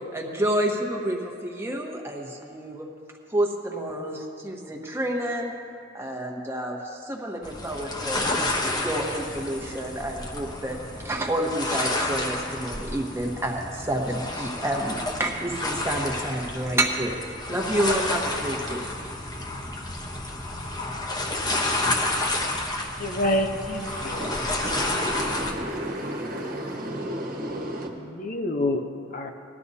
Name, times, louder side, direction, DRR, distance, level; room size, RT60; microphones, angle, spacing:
voice 1, 0.1-2.9 3.3-5.5 5.9-8.3 8.8-17.2 17.5-18.8, right 1 dB, 15° right, 0 dB, 1.2 m, -29 dB
sound 1, 7.4-25.5, left 2 dB, 20° left, 0.9 m, -30 dB
voice 2, 23.0-24.2 28.1-28.8 29.1-29.3, left 1 dB, 45° left, 4 dB, 0.7 m, -27 dB
voice 3, 23.5-27.9, right 1 dB, 50° right, 0 dB, 1.4 m, -33 dB
19.0 x 12.0 x 2.8 m, 2.4 s
head